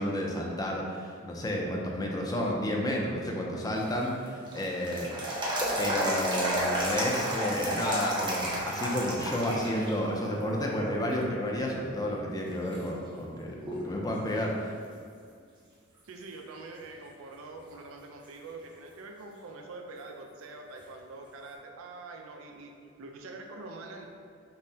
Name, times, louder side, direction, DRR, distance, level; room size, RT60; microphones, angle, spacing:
voice 1, 0.0-5.1 5.8-14.7, left 1 dB, 20° left, -1 dB, 0.4 m, -31 dB
sound 1, 3.8-9.9 10.3-10.4 11.1-11.6 12.2-12.3 12.7-14.0 14.3-14.4 17.7-17.8 20.8-20.9, right 1 dB, 20° right, 0.6 m, -32 dB
voice 2, 16.0-24.1, right 3 dB, 75° right, 3 dB, 0.4 m, -45 dB
5.4 x 2.1 x 2.7 m, 2.1 s
head